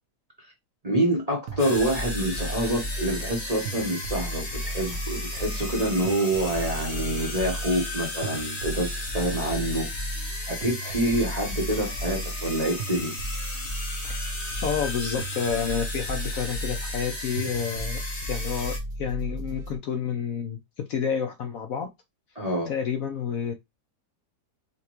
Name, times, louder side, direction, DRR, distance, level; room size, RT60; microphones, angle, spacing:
voice 1, 0.8-9.9 10.5-13.2 22.3-22.7, right 1 dB, 30° right, 0.8 m, -27 dB
sound 1, 1.5-19.8, right 1 dB, 60° right, 0.9 m, -35 dB
sound 2, 1.6-18.8, left 2 dB, 40° left, 1.7 m, -36 dB
voice 2, 14.6-18.0 18.2-20.6 20.9-21.9 22.7-23.5, left 7 dB, 65° left, 0.9 m, -29 dB
5.6 x 2.2 x 2.9 m
omnidirectional pair, 1.8 m